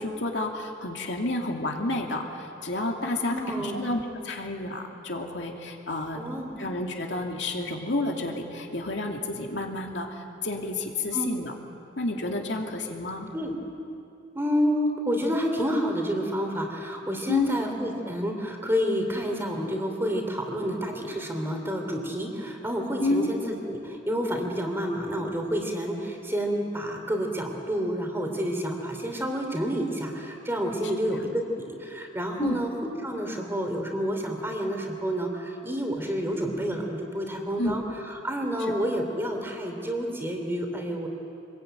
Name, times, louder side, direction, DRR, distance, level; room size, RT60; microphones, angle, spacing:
voice 1, 0.0-6.2 6.6-11.5 12.0-13.3 17.3-17.5 23.0-23.3 31.2-31.3 32.4-32.6 37.6-37.8, left 2 dB, 65° left, 1 dB, 2.5 m, -30 dB
voice 2, 3.3-3.8 6.1-6.6 11.1-11.3 13.3-13.5 14.3-32.7 33.0-41.1, equal, 10° right, 2 dB, 3.1 m, -29 dB
26.0 x 21.0 x 9.1 m, 2.8 s
head